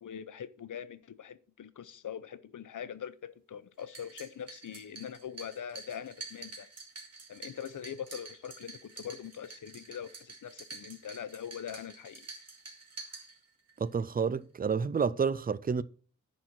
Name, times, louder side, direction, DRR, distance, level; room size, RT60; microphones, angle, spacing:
voice 1, 0.0-6.7 7.3-12.3, left 8 dB, 80° left, 0.7 m, -42 dB
sound 1, 3.8-13.8, right 3 dB, 55° right, 2.3 m, -48 dB
voice 2, 13.8-15.8, right 6 dB, 30° right, 0.4 m, -29 dB
10.5 x 4.2 x 6.3 m
wide cardioid pair, 145°, 30 cm